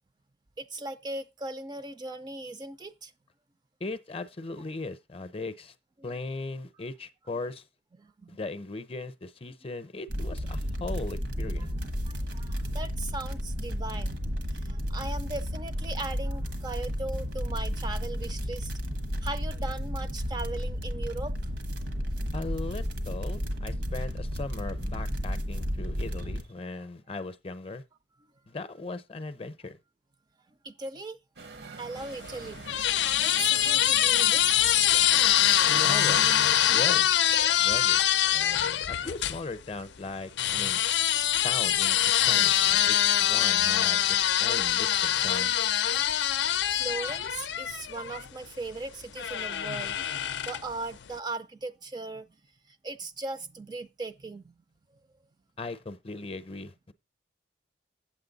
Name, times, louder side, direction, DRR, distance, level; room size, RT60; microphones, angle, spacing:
voice 1, 0.6-3.1 8.0-8.4 12.1-14.2 14.5-18.8 19.2-21.3 26.7-26.9 30.6-31.2 31.8-32.6 33.2-34.6 40.6-40.8 46.7-52.3 52.7-54.6, right 2 dB, 25° right, 0.4 m, -38 dB
voice 2, 3.8-5.7 6.0-7.6 8.3-11.7 22.3-27.8 28.5-29.8 35.7-36.3 36.7-37.1 37.6-38.0 38.3-40.8 41.4-44.0 44.4-45.5 55.6-56.9, left 3 dB, 35° left, 0.6 m, -38 dB
sound 1, 10.1-26.4, equal, 85° right, 1.4 m, -32 dB
sound 2, 31.4-36.9, right 3 dB, 65° right, 0.8 m, -45 dB
squeaky kitchen cabinet, 32.0-39.4 40.4-48.3 49.2-50.8, left 11 dB, 80° left, 0.5 m, -24 dB
8.5 x 7.6 x 3.9 m
head